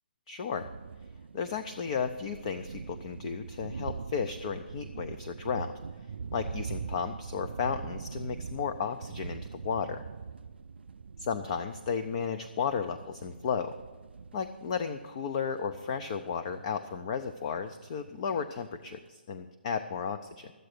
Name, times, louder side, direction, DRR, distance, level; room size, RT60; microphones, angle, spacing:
voice 1, 0.3-0.7 1.3-5.7 6.3-10.0 11.3-13.7 14.3-20.5, left 6 dB, 35° left, 9 dB, 0.5 m, -34 dB
sound 1, 0.6-19.1, right 5 dB, 85° right, 0.4 m, -43 dB
13.5 x 7.8 x 6.6 m, 1.3 s
hypercardioid pair, 160°, 6 cm